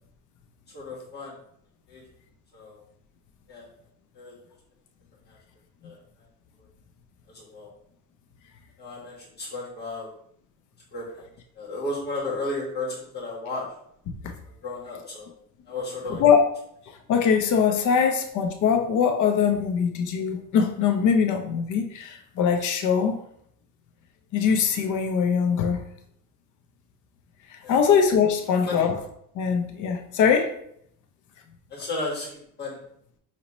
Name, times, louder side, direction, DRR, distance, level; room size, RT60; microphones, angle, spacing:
voice 1, 0.7-1.3 1.9-2.0 2.5-2.8 3.5-3.7 4.1-4.3 5.3-5.4 5.8-6.0 7.3-7.7 8.8-10.1 10.9-11.3 11.5-13.6 14.6-15.3 15.7-16.2 18.0-18.1 27.6-27.8 28.6-28.8 31.7-32.8, left 2 dB, 25° left, -5 dB, 1.5 m, -34 dB
voice 2, 17.1-23.1 24.3-25.8 27.7-28.9 29.3-30.5, left 7 dB, 55° left, 4 dB, 0.7 m, -22 dB
5.1 x 2.8 x 3.0 m, 0.70 s
cardioid pair, 170°, 36 cm